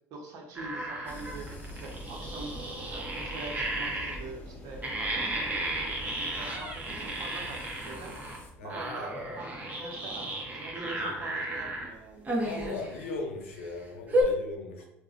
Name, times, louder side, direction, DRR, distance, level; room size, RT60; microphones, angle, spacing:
voice 1, 0.1-1.5 1.8-2.6 2.9-8.2 8.6-12.3 12.6-12.7, right 3 dB, 60° right, 1 dB, 0.7 m, -44 dB
sound 1, 0.5-4.2 4.8-8.4 8.7-11.9 12.3-13.0 13.6-13.7 14.1-14.2, right 1 dB, 25° right, 0.8 m, -33 dB
sound 2, 1.0-8.5, equal, 30° left, 0.7 m, -44 dB
voice 2, 12.4-14.9, left 3 dB, 85° left, 2 dB, 0.5 m, -38 dB
3.4 x 2.1 x 2.4 m, 0.86 s
hypercardioid pair, 70°, 7 cm